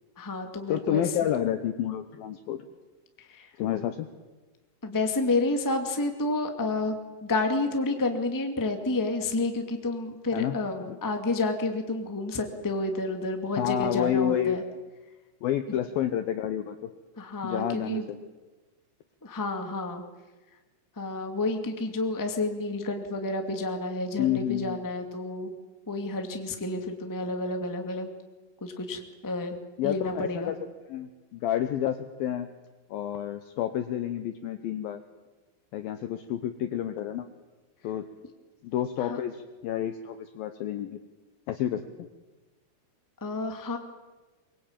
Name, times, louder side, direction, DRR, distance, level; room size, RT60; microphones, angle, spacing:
voice 1, 0.2-1.3 3.2-3.5 4.8-14.6 17.2-18.1 19.2-20.0 20.9-25.5 25.9-28.1 28.6-29.6 29.8-30.5 39.0-39.2 43.2-43.8, left 2 dB, 15° left, 5 dB, 0.6 m, -30 dB
voice 2, 0.7-2.6 3.6-4.1 10.3-11.0 13.6-14.6 15.4-16.9 17.4-18.2 24.2-24.8 29.8-30.6 30.9-32.5 32.9-35.0 35.7-37.3 37.8-38.1 38.6-41.0 41.5-41.8, left 10 dB, 70° left, 9 dB, 2.3 m, -29 dB
24.0 x 23.5 x 9.0 m, 1.2 s
omnidirectional pair, 5.2 m